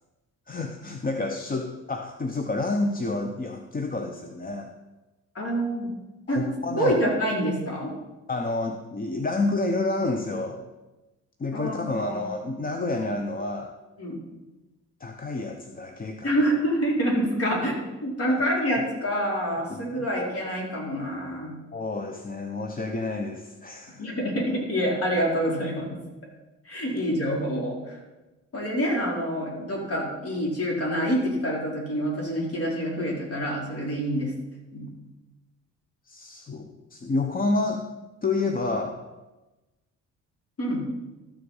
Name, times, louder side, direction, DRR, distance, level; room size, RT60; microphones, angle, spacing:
voice 1, 0.5-4.7 6.3-6.9 8.3-10.7 11.4-13.7 15.0-16.3 18.3-18.4 19.7-20.1 21.7-24.0 26.9-27.0 36.0-37.9 38.2-39.0, left 3 dB, 30° left, 5 dB, 0.9 m, -29 dB
voice 2, 5.3-5.9 6.3-6.4 6.8-7.9 11.5-12.2 14.0-14.2 16.2-21.5 24.0-26.0 26.6-28.0 28.5-34.3 34.7-34.9 40.6-40.8, equal, 50° left, -2 dB, 4.2 m, -27 dB
13.5 x 6.7 x 5.5 m, 1.1 s
cardioid pair, 90°, 30 cm